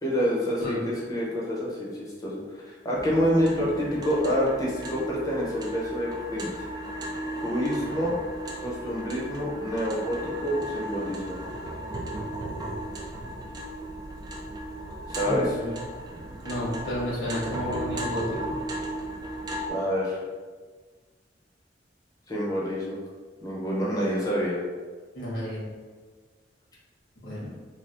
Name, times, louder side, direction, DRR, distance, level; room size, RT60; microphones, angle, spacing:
voice 1, 0.0-2.4 2.7-6.6 7.4-8.1 8.6-11.4 15.1-15.6 19.7-20.2 22.3-23.0 23.4-24.6, equal, 20° left, -5 dB, 0.7 m, -27 dB
sound 1, 2.9-19.7, right 1 dB, 25° right, 0.4 m, -36 dB
voice 2, 15.2-15.8 16.4-18.6 25.1-25.6 27.2-27.5, equal, 75° left, -7 dB, 1.3 m, -32 dB
3.3 x 2.5 x 2.6 m, 1.4 s
head